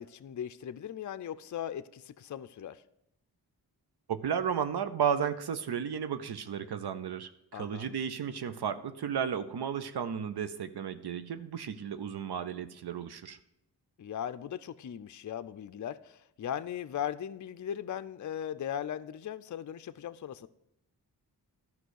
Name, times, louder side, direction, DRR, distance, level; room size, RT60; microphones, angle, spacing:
voice 1, 0.0-2.8 7.5-7.9 14.0-20.5, left 9 dB, 50° left, 11 dB, 0.5 m, -38 dB
voice 2, 4.1-13.4, right 7 dB, 75° right, 10 dB, 0.7 m, -33 dB
11.5 x 5.4 x 6.3 m, 0.81 s
cardioid pair, 50°, 40 cm